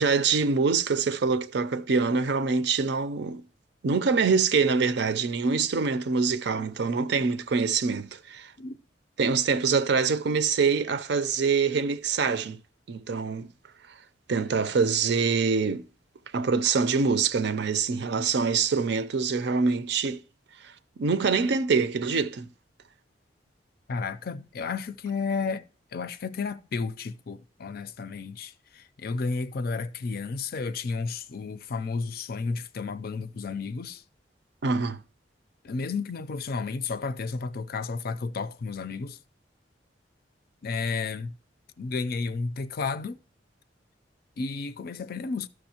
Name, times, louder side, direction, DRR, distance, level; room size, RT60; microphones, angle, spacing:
voice 1, 0.0-3.4 3.8-8.5 9.2-12.6 12.9-13.5 14.3-15.8 16.3-20.2 21.0-22.5 34.6-35.0, right 5 dB, 65° right, 0.5 m, -25 dB
voice 2, 23.9-25.6 25.9-34.0 35.6-39.2 40.6-41.4 41.8-43.2 44.4-45.5, left 4 dB, 55° left, 0.4 m, -32 dB
14.0 x 6.2 x 2.9 m
head